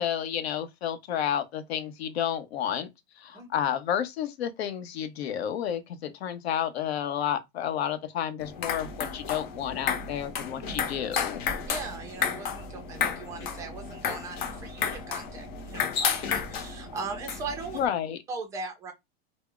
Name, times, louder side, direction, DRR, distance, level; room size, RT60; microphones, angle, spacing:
voice 1, 0.0-2.9 3.2-11.4 17.7-18.2, left 9 dB, 85° left, 0.7 m, -31 dB
sound 1, 8.4-17.9, left 6 dB, 50° left, 0.9 m, -32 dB
voice 2, 11.7-17.8 18.3-18.9, right 4 dB, 10° right, 0.3 m, -39 dB
2.3 x 2.0 x 3.6 m
supercardioid pair, 155°, 31 cm